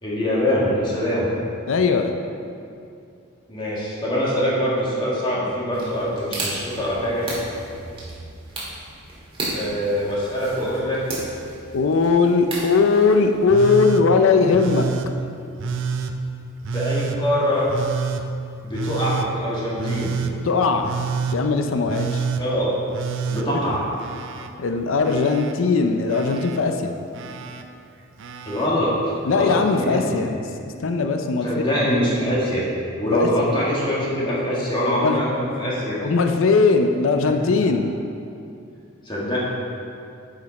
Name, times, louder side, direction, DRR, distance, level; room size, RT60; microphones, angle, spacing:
voice 1, 0.0-1.3 3.5-7.3 9.5-11.0 16.7-17.7 18.6-20.1 22.4-22.7 23.3-23.8 28.4-30.3 31.4-32.7 32.9-36.0 37.2-37.3 39.0-39.4, equal, 25° left, -7 dB, 1.7 m, -23 dB
voice 2, 1.7-2.2 11.7-14.9 20.4-20.9 21.3-22.3 24.6-26.9 29.3-30.3 30.6-31.6 33.1-33.3 35.0-35.2 36.0-37.9, left 4 dB, 65° left, 5 dB, 0.5 m, -19 dB
sound 1, 5.7-13.5, right 2 dB, 25° right, 1.8 m, -34 dB
Telephone, 13.5-14.0 14.5-15.1 15.6-16.1 16.6-17.2 17.7-18.2 18.7-19.3 19.8-20.3 20.8-21.4 21.9-22.4 22.9-24.5 24.8-25.5 26.1-26.6 27.1-27.6 28.2-28.7 29.9-30.0, right 5 dB, 60° right, 0.4 m, -28 dB
9.3 x 5.2 x 4.1 m, 2.5 s
head